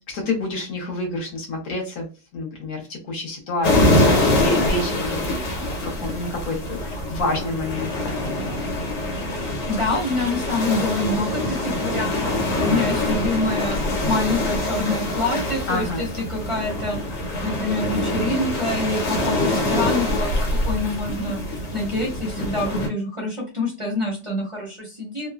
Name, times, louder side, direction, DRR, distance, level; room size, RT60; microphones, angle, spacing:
voice 1, 0.1-2.1 2.3-7.9 15.7-16.0, left 2 dB, 65° left, 0 dB, 1.3 m, -29 dB
sound 1, 3.6-22.9, left 1 dB, 90° left, 1.5 m, -24 dB
voice 2, 9.7-12.3 12.6-13.8 14.0-17.0 17.4-20.3 20.6-25.3, left 2 dB, 30° right, -3 dB, 0.6 m, -26 dB
3.1 x 2.0 x 2.3 m, 0.33 s
omnidirectional pair, 1.8 m